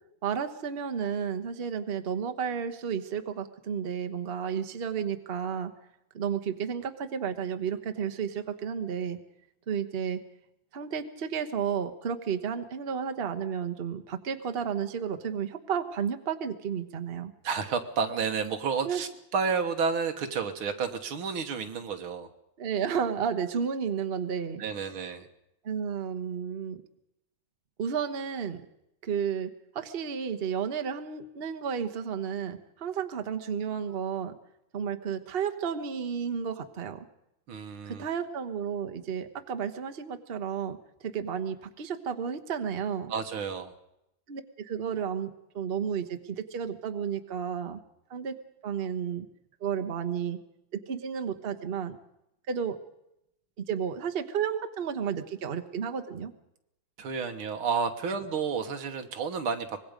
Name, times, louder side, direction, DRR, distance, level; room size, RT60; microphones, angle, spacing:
voice 1, 0.2-5.7 6.1-9.2 9.7-10.2 10.7-17.3 18.8-19.0 22.6-24.6 25.6-26.8 27.8-28.6 29.0-34.3 34.7-37.1 37.8-43.1 44.3-47.8 48.1-48.3 48.6-49.3 49.6-50.4 50.7-52.0 52.5-52.8 53.6-56.3, right 7 dB, 35° right, 7 dB, 1.1 m, -32 dB
voice 2, 17.4-22.3 24.6-25.3 37.5-38.1 43.1-43.7 57.0-59.8, right 5 dB, 85° right, 6 dB, 2.3 m, -31 dB
24.5 x 21.0 x 5.2 m, 0.83 s
omnidirectional pair, 2.2 m